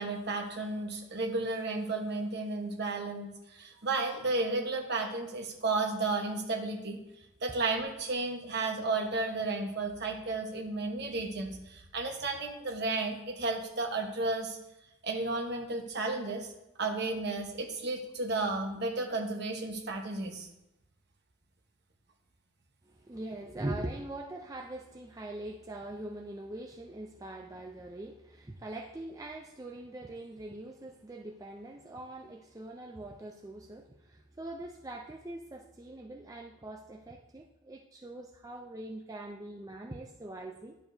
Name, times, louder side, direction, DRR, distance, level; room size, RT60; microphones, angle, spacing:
voice 1, 0.0-7.0 7.4-14.6 15.0-16.5 16.8-20.5, right 3 dB, 50° right, 2 dB, 1.2 m, -33 dB
voice 2, 22.9-40.7, right 1 dB, 15° right, 0 dB, 0.4 m, -42 dB
10.5 x 6.8 x 2.7 m, 0.93 s
head